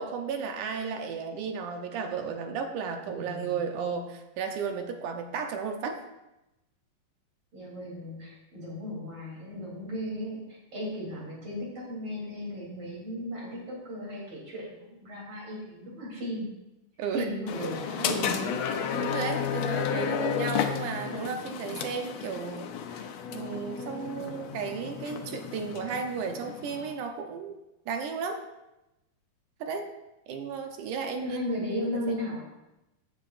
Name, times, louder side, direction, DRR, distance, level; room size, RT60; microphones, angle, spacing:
voice 1, 0.0-6.0 17.0-17.3 19.0-27.6 27.9-28.4 29.6-29.9 30.3-32.2, right 6 dB, 70° right, 5 dB, 2.2 m, -34 dB
voice 2, 3.0-3.6 7.5-16.5 17.1-18.6 31.1-32.4, left 1 dB, 40° right, -4 dB, 4.1 m, -36 dB
sound 1, 17.5-26.9, left 7 dB, 90° left, 1.4 m, -32 dB
15.0 x 8.1 x 2.6 m, 0.94 s
omnidirectional pair, 3.9 m